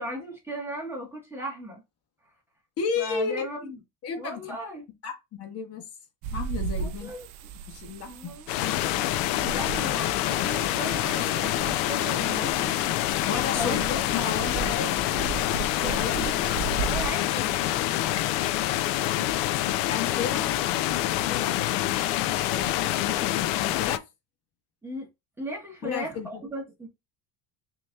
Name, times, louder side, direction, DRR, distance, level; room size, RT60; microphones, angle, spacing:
voice 1, 0.0-1.8 3.0-3.8 4.2-4.8 6.8-7.3 8.1-8.5 8.8-12.8 13.4-13.8 14.7-15.3 15.8-17.5 24.8-25.1 25.4-26.9, equal, 5° right, 1.2 m, -37 dB
voice 2, 2.8-3.7 4.0-4.6 5.0-5.9 6.3-7.1 7.7-8.4 13.3-15.1 15.9-16.2 16.8-17.1 18.9-24.0 25.8-26.4, left 6 dB, 35° left, 1.2 m, -34 dB
sound 1, 6.2-17.1, right 7 dB, 75° right, 0.6 m, -37 dB
sound 2, 8.5-24.0, left 14 dB, 85° left, 0.6 m, -26 dB
6.1 x 3.0 x 2.3 m
cardioid pair, 170°, 40 cm